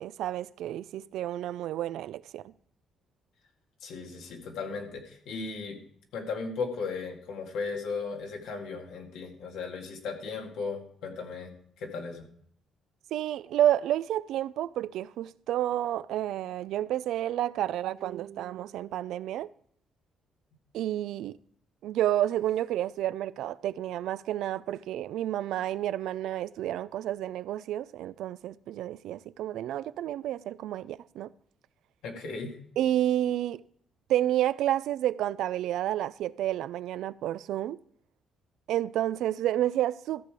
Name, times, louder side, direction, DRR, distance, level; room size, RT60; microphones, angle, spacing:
voice 1, 0.0-2.4 13.1-19.5 20.7-21.4 21.8-31.3 32.8-33.6 34.1-37.8 38.7-40.3, right 12 dB, 85° right, 0.3 m, -30 dB
voice 2, 3.8-5.8 6.1-11.5 11.8-12.3 32.0-32.6, left 4 dB, 90° left, 2.0 m, -36 dB
14.0 x 6.7 x 4.8 m
cardioid pair, 90°, 0 cm